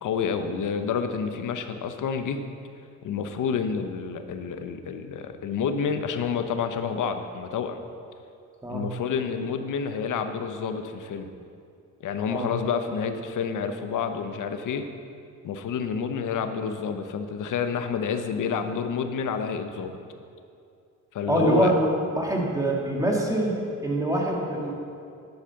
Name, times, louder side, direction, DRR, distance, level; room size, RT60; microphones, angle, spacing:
voice 1, 0.0-2.4 3.0-7.8 8.7-11.3 12.0-14.8 15.4-19.9 21.1-21.7, left 6 dB, 65° left, 8 dB, 0.9 m, -29 dB
voice 2, 21.3-24.7, right 1 dB, 10° right, -2 dB, 2.0 m, -25 dB
10.5 x 4.9 x 6.9 m, 2.4 s
cardioid pair, 80°, 34 cm